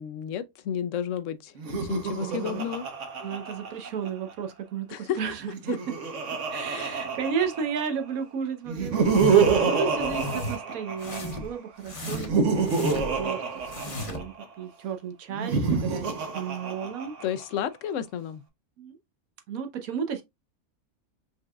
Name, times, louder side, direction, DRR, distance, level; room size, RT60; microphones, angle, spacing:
voice 1, 0.0-2.9 4.9-5.2 5.7-5.8 6.7-7.0 17.2-18.4, left 9 dB, 70° left, 0.9 m, -32 dB
Laughter, 1.6-4.3 5.4-8.0 8.7-11.4 12.0-14.4 15.3-17.4, right 5 dB, 60° right, 1.2 m, -27 dB
voice 2, 2.1-2.6 3.2-5.8 6.5-13.4 13.9-17.1 18.8-19.0 19.5-20.2, right 7 dB, 80° right, 1.4 m, -33 dB
sound 1, 9.0-9.6 10.0-10.6 11.0-11.5 11.9-13.2 13.6-14.3, left 2 dB, 25° left, 0.9 m, -34 dB
5.3 x 3.7 x 2.3 m
omnidirectional pair, 1.5 m